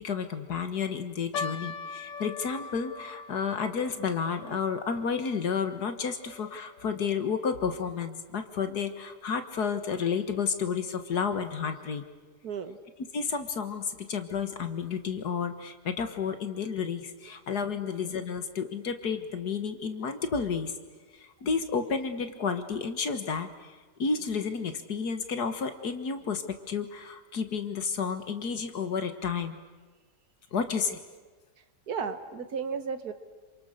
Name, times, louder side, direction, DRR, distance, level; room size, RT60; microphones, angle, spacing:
voice 1, 0.0-12.0 13.1-20.7 21.2-29.6 30.5-31.0, left 6 dB, 65° left, 8 dB, 2.1 m, -31 dB
sound 1, 1.3-7.8 8.1-8.2 9.0-9.2 9.8-9.9 10.3-10.5, left 4 dB, 90° left, 1.7 m, -42 dB
voice 2, 12.4-12.8 30.9-31.0 31.9-33.1, right 6 dB, 60° right, 10 dB, 1.8 m, -34 dB
28.0 x 26.5 x 6.7 m, 1.3 s
omnidirectional pair, 1.9 m